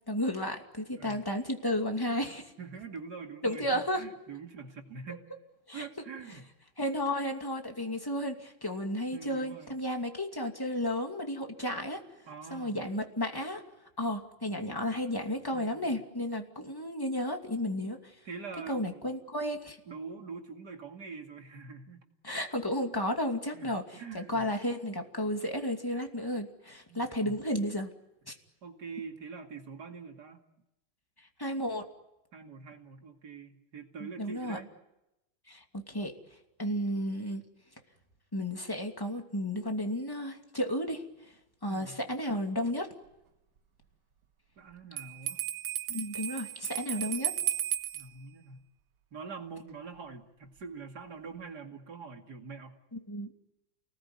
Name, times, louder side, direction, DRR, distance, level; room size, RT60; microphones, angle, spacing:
voice 1, 0.1-2.5 3.4-4.0 5.7-5.9 6.8-12.0 12.5-13.6 14.0-18.1 18.7-19.8 22.2-23.8 24.1-27.9 28.3-28.4 31.4-31.8 34.0-34.6 35.5-36.1 36.6-37.4 38.3-41.0 41.6-42.9 45.9-47.3 52.9-53.3, equal, 10° left, 3 dB, 2.5 m, -33 dB
voice 2, 2.6-5.3 5.7-6.5 9.1-9.7 12.3-12.8 15.5-15.9 18.2-19.1 19.9-22.0 23.5-24.5 26.9-27.4 28.2-30.4 32.3-34.7 41.7-42.0 44.6-45.4 47.9-48.6 49.1-52.8, right 5 dB, 50° right, 4 dB, 2.8 m, -44 dB
Bell, 45.0-48.1, right 11 dB, 85° right, 2.2 m, -34 dB
29.5 x 20.0 x 9.8 m, 0.92 s
omnidirectional pair, 2.3 m